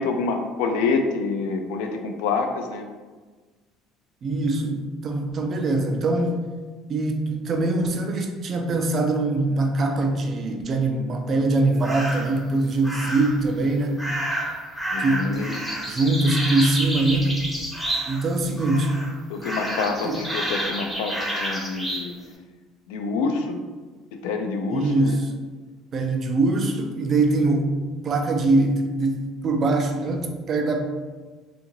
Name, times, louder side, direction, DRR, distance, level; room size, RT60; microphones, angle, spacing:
voice 1, 0.0-2.9 14.9-15.5 19.3-22.1 22.9-23.6 24.1-25.2, left 4 dB, 90° left, 5 dB, 0.3 m, -27 dB
voice 2, 4.2-6.4 6.9-14.0 15.0-15.3 15.9-17.4 18.1-18.9 20.0-20.2 24.7-25.3 25.9-27.7 28.0-30.9, right 2 dB, 40° right, 4 dB, 0.4 m, -23 dB
sound 1, 11.8-12.4 12.8-13.4 14.0-18.3 18.6-19.1 19.4-22.1, right 1 dB, ahead, 0.6 m, -29 dB
2.8 x 2.4 x 2.9 m, 1.4 s
cardioid pair, 115°, 0 cm